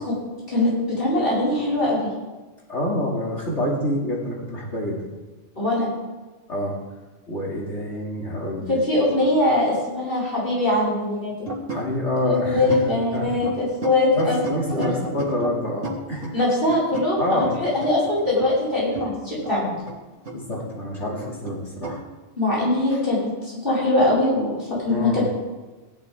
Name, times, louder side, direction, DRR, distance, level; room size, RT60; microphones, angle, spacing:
voice 1, 0.5-2.1 5.6-5.9 8.7-11.3 12.2-14.4 14.7-14.9 16.3-19.8 22.4-25.2, left 2 dB, 45° left, -7 dB, 5.6 m, -22 dB
voice 2, 2.7-5.1 6.5-6.7 7.3-8.8 11.7-13.4 14.1-16.4 17.2-17.6 20.3-22.0 22.9-23.0 24.9-25.2, left 1 dB, 65° left, -3 dB, 2.8 m, -27 dB
sound 1, 11.5-11.8 12.2-12.3 12.7-12.9 13.1-15.6 15.8-16.3 16.7-19.2 19.4-19.6 19.9-21.6 21.8-22.0, right 2 dB, 80° right, 2.2 m, -32 dB
17.0 x 11.0 x 3.6 m, 1.2 s
omnidirectional pair, 1.3 m